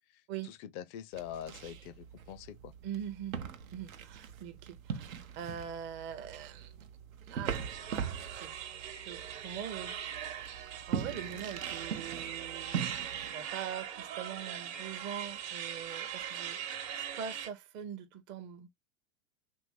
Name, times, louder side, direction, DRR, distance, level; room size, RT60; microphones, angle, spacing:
voice 1, 0.1-2.7, left 10 dB, 35° left, 0.4 m, -44 dB
sound 1, 1.1-13.3, right 7 dB, 80° right, 0.6 m, -41 dB
voice 2, 2.8-6.7 7.3-10.0 10.9-12.8 13.3-18.7, right 9 dB, 30° right, 0.6 m, -43 dB
sound 2, 7.5-17.5, right 9 dB, 50° right, 1.0 m, -41 dB
3.0 x 2.6 x 3.1 m
hypercardioid pair, 95°, 40 cm